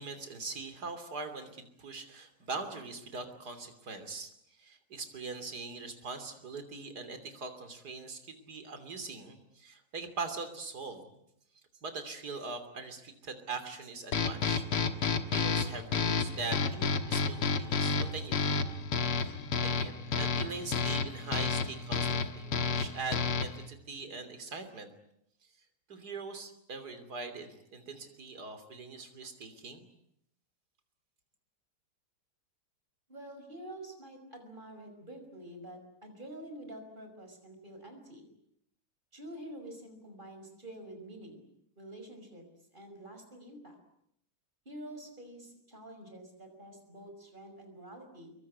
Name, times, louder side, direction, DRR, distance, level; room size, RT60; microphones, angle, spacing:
voice 1, 0.0-4.3 4.6-11.2 11.8-14.6 15.3-18.5 19.1-19.3 19.6-24.9 25.9-29.9, right 4 dB, 45° right, 8 dB, 3.5 m, -42 dB
sound 1, 14.1-23.7, left 4 dB, 90° left, 2.5 m, -31 dB
voice 2, 33.1-38.3 39.1-41.5 41.8-42.4 42.7-43.7 44.7-48.3, right 1 dB, 20° right, 5 dB, 5.7 m, -47 dB
25.0 x 22.5 x 9.7 m, 0.76 s
omnidirectional pair, 2.4 m